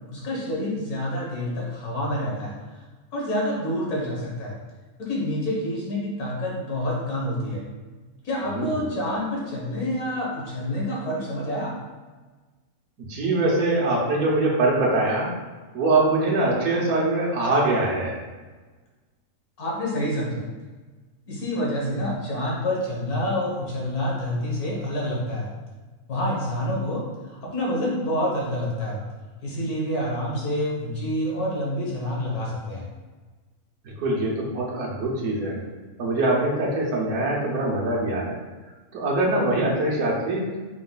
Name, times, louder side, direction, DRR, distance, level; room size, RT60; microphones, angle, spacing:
voice 1, 0.1-2.5 3.1-4.5 5.0-7.6 8.2-11.7 19.6-20.4 21.3-25.5 26.1-29.0 29.4-32.9, left 1 dB, 80° left, -4 dB, 1.7 m, -27 dB
voice 2, 8.4-8.8 13.0-15.3 15.7-18.2 33.8-35.6 36.0-38.4 38.9-40.6, right 2 dB, 75° right, -2 dB, 1.3 m, -23 dB
4.7 x 2.3 x 3.9 m, 1.3 s
omnidirectional pair, 1.5 m